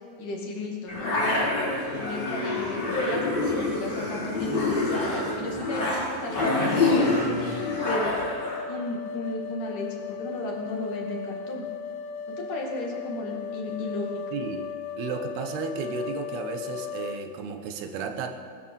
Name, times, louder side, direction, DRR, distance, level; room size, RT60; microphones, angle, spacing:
voice 1, 0.2-1.6 2.0-7.2 7.9-8.2 8.7-11.7 12.3-14.2, left 1 dB, 60° left, -1 dB, 3.5 m, -34 dB
sound 1, 0.9-8.6, left 2 dB, 40° left, 4.4 m, -26 dB
sound 2, 7.4-17.2, left 7 dB, 80° left, 2.6 m, -36 dB
voice 2, 14.3-14.6 15.0-18.3, right 5 dB, 85° right, 6 dB, 3.2 m, -33 dB
20.0 x 10.5 x 7.1 m, 2.2 s
omnidirectional pair, 4.5 m